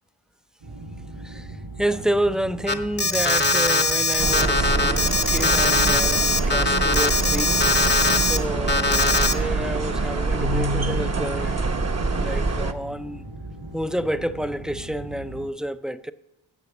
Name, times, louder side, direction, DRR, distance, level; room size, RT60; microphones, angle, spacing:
sound 1, 0.6-15.5, right 1 dB, 75° right, 5.2 m, -39 dB
voice 1, 1.2-7.6 8.1-11.7 12.1-13.2 13.7-16.1, equal, ahead, 0.5 m, -29 dB
Alarm, 2.7-8.4 8.7-9.3, left 3 dB, 20° left, 0.8 m, -21 dB
sound 2, 4.2-12.7, right 3 dB, 30° right, 0.9 m, -25 dB
15.0 x 5.8 x 7.1 m
cardioid pair, 50°, 48 cm